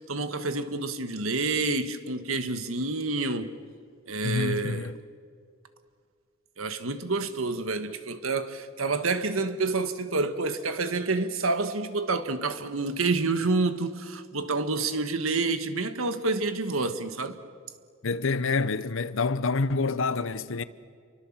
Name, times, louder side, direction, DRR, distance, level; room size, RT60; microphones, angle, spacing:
voice 1, 0.1-3.5 4.1-4.9 6.6-17.4, right 3 dB, 85° right, 1.6 m, -28 dB
voice 2, 4.2-5.0 18.0-20.6, left 4 dB, 70° left, 0.9 m, -27 dB
29.0 x 24.0 x 7.4 m
head